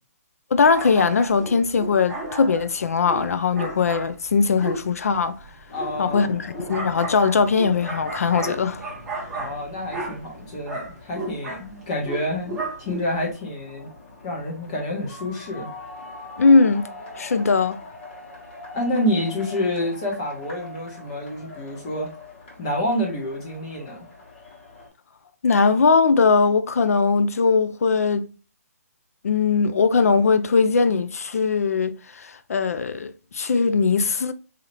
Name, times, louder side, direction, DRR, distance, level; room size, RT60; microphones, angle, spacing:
voice 1, 0.5-5.4 6.0-8.8 16.4-16.9 17.2-17.8 25.4-28.2 29.2-34.3, left 4 dB, 65° left, 0.4 m, -20 dB
sound 1, 0.7-13.3, right 2 dB, 5° right, 0.5 m, -34 dB
sound 2, 5.7-24.9, left 2 dB, 35° left, 1.4 m, -43 dB
voice 2, 5.7-6.3 9.3-13.9 14.2-15.7 18.7-22.1 22.6-24.1, left 1 dB, 20° left, 1.1 m, -28 dB
4.0 x 2.8 x 3.0 m
hypercardioid pair, 170°, 9 cm